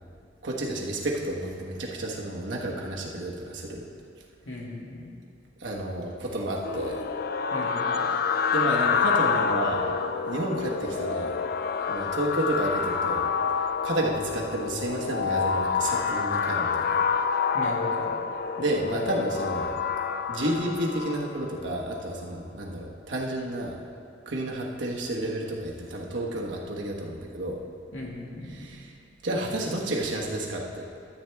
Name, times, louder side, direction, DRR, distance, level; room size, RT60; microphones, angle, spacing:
voice 1, 0.4-3.9 5.6-7.0 8.5-10.0 10.3-11.4 11.9-17.0 18.6-19.8 20.3-23.8 24.3-27.6 28.5-28.9 29.2-30.8, right 1 dB, 75° right, -2 dB, 1.3 m, -31 dB
voice 2, 4.5-5.1 7.5-8.0 17.5-18.1 27.9-28.7, left 1 dB, 85° left, -4 dB, 2.1 m, -37 dB
sound 1, 6.6-21.7, left 6 dB, 55° left, 0.4 m, -27 dB
13.0 x 7.9 x 3.5 m, 2.7 s
head